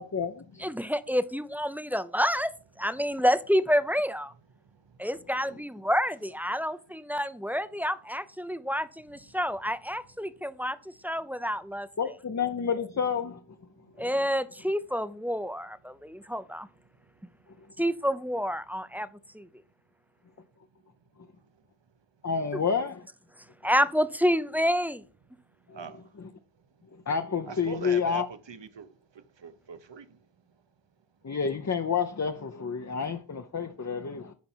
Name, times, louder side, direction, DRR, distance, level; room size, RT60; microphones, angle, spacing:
voice 1, 0.0-0.7 12.0-13.4 14.0-14.1 22.2-23.1 25.7-25.9 26.2-26.3 26.9-28.3 31.2-34.3, left 6 dB, 35° left, 0.7 m, -29 dB
voice 2, 0.6-4.3 5.0-11.9 14.0-16.7 17.8-19.1 19.3-19.5 22.5-22.6 23.6-25.0, equal, 5° right, 0.5 m, -28 dB
voice 3, 27.5-28.9 29.4-30.0, right 5 dB, 65° right, 1.0 m, -40 dB
9.4 x 5.3 x 4.5 m
wide cardioid pair, 65°, 48 cm